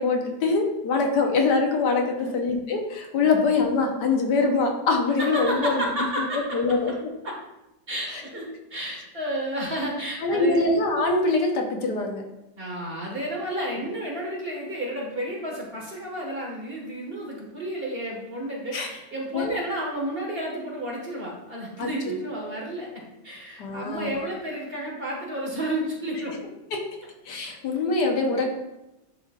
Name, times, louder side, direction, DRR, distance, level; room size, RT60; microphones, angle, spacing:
voice 1, 0.0-6.1 6.5-7.1 8.1-8.2 10.2-12.2 18.7-18.9 19.3-19.5 21.8-21.9 22.4-22.6 23.6-24.2 26.7-26.8 27.3-28.5, left 3 dB, 75° left, 2 dB, 1.5 m, -24 dB
voice 2, 5.2-6.6 7.2-7.3 7.9-10.7 12.6-26.3, right 1 dB, 35° right, -3 dB, 1.6 m, -31 dB
10.5 x 4.3 x 2.4 m, 0.94 s
omnidirectional pair, 1.8 m